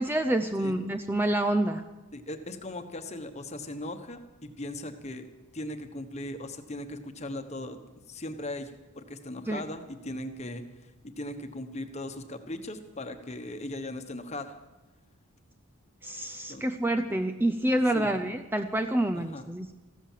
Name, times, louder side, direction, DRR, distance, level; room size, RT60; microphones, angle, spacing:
voice 1, 0.0-1.8 9.5-9.6 16.0-19.7, right 1 dB, 10° right, 7 dB, 0.5 m, -27 dB
voice 2, 2.1-5.3 5.5-7.8 8.1-10.9 11.2-14.5 16.5-16.6 17.9-18.2 19.1-19.4, left 1 dB, 30° left, 7 dB, 1.1 m, -38 dB
15.0 x 13.0 x 7.4 m, 1.1 s
head